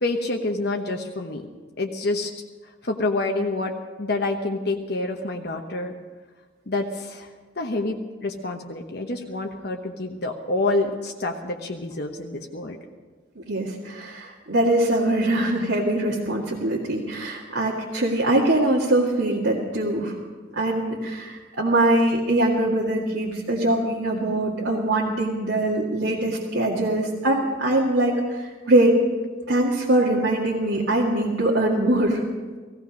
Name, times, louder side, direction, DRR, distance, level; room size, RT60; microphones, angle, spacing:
voice 1, 0.0-1.5 1.8-2.3 2.8-5.9 6.7-7.3 7.6-12.8, left 2 dB, 55° left, 2 dB, 1.1 m, -27 dB
voice 2, 13.4-20.2 20.6-29.0 29.5-32.2, right 1 dB, 75° right, -5 dB, 2.0 m, -22 dB
17.0 x 16.5 x 5.2 m, 1.4 s
head